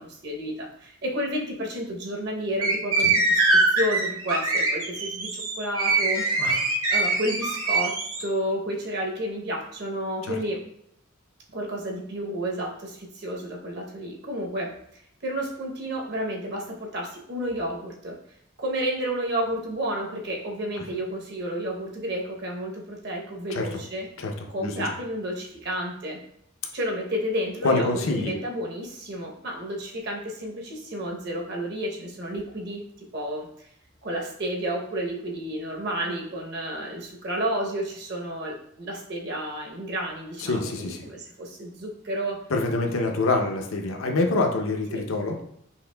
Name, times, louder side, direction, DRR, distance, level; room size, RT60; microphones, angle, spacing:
voice 1, 0.0-6.2 6.9-7.9 8.2-10.6 11.5-18.2 18.6-24.1 24.5-26.2 26.7-33.5 34.0-42.4 44.9-45.0, equal, 50° right, -1 dB, 0.8 m, -31 dB
sound 1, 2.6-8.2, right 3 dB, 90° right, 0.9 m, -23 dB
voice 2, 27.6-28.4 40.4-41.1 42.5-45.4, left 2 dB, 75° left, 3 dB, 0.6 m, -26 dB
5.6 x 2.5 x 2.2 m, 0.72 s
head